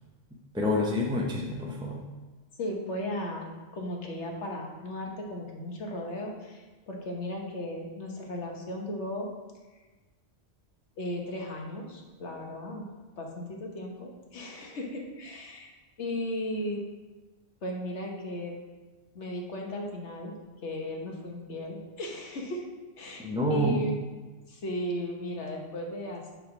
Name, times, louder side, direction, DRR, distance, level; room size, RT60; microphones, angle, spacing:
voice 1, 0.5-2.0 23.2-23.8, left 1 dB, 5° right, -2 dB, 0.4 m, -27 dB
voice 2, 2.6-9.3 11.0-12.8 13.2-15.7 16.0-16.8 17.6-18.5 19.1-20.3 20.6-22.6 23.0-24.1 24.5-26.3, equal, 65° left, 0 dB, 1.3 m, -36 dB
7.0 x 3.5 x 6.0 m, 1.2 s
omnidirectional pair, 1.3 m